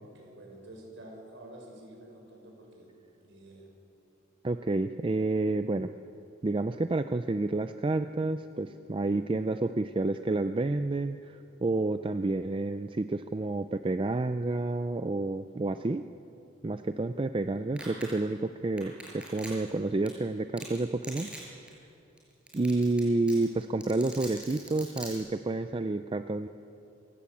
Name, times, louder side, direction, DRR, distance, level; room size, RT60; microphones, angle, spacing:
voice 1, 0.0-2.9 3.2-3.7, right 1 dB, 60° right, 0 dB, 6.7 m, -49 dB
voice 2, 4.4-5.9 6.4-16.0 16.6-21.3 22.5-26.5, right 2 dB, 25° right, 9 dB, 0.4 m, -29 dB
Domestic sounds home sounds, 17.8-18.1 18.8-19.7 20.1-20.2 20.6-20.8 21.0-21.4 21.7-21.8 22.2-22.3 22.5-23.0 23.3-25.1, right 1 dB, 5° right, 5.9 m, -42 dB
28.0 x 15.5 x 8.6 m, 2.7 s
head